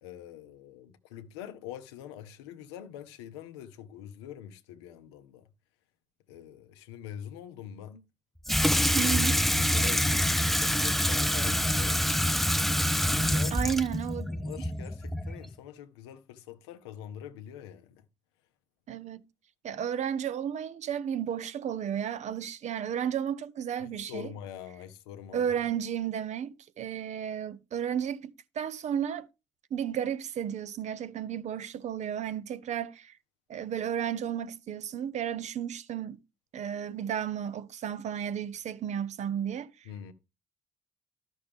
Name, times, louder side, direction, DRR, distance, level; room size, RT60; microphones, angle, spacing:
voice 1, 0.0-5.5 6.3-8.1 9.5-12.2 13.0-13.7 14.2-18.1 23.8-25.4 39.8-40.1, left 10 dB, 85° left, 0.8 m, -44 dB
Water tap faucet / Sink (filling or washing), 8.5-15.5, equal, ahead, 0.5 m, -26 dB
voice 2, 8.9-9.4 13.5-14.3 18.9-19.2 19.6-24.3 25.3-29.3 29.7-33.1 33.5-36.2 36.5-39.7, right 9 dB, 60° right, 0.8 m, -33 dB
12.5 x 6.2 x 3.5 m
hypercardioid pair, 45°, 14 cm